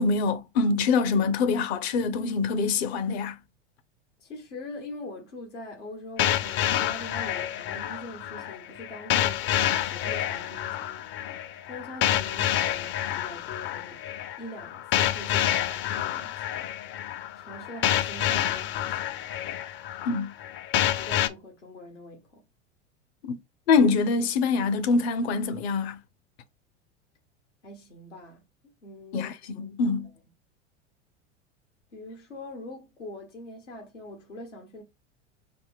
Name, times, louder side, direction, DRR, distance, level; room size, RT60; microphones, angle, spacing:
voice 1, 0.0-3.3 20.0-20.3 23.3-23.4 23.7-26.0 29.1-30.1, left 4 dB, 60° left, 0.9 m, -24 dB
voice 2, 4.2-14.0 14.4-17.0 17.3-19.2 21.0-22.4 27.6-29.3 31.9-34.8, left 1 dB, 85° left, 1.4 m, -43 dB
dnb phasin chord (consolidated), 6.2-21.3, left 12 dB, 35° left, 0.5 m, -28 dB
4.2 x 2.7 x 3.4 m
hypercardioid pair, 90°, 35 cm